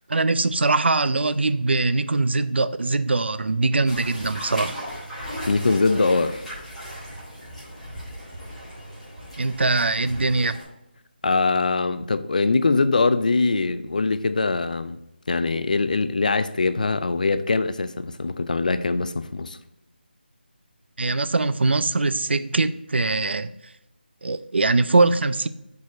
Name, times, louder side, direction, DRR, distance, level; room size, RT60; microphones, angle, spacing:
voice 1, 0.1-4.8 9.4-10.6 21.0-23.5 24.2-25.5, right 3 dB, 85° right, 0.4 m, -22 dB
sound 1, 3.8-10.6, equal, ahead, 1.0 m, -37 dB
voice 2, 5.5-6.4 11.2-15.0 15.3-19.6, left 3 dB, 50° left, 0.3 m, -22 dB
5.1 x 4.0 x 4.9 m
figure-of-eight pair, 175°, 6 cm